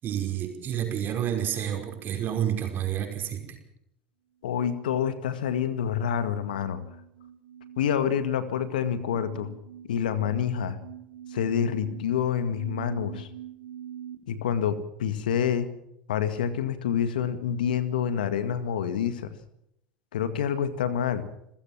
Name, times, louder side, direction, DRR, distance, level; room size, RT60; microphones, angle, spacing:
voice 1, 0.0-3.6, right 10 dB, 45° right, 4 dB, 5.5 m, -29 dB
voice 2, 4.4-6.8 7.8-9.5 9.8-10.8 11.3-13.3 14.3-15.7 16.1-19.3 20.1-21.2, left 8 dB, 75° left, 12 dB, 1.9 m, -27 dB
sound 1, 5.8-14.1, right 10 dB, 85° right, 3.3 m, -44 dB
28.5 x 15.0 x 7.4 m, 0.78 s
hypercardioid pair, 75°, 5 cm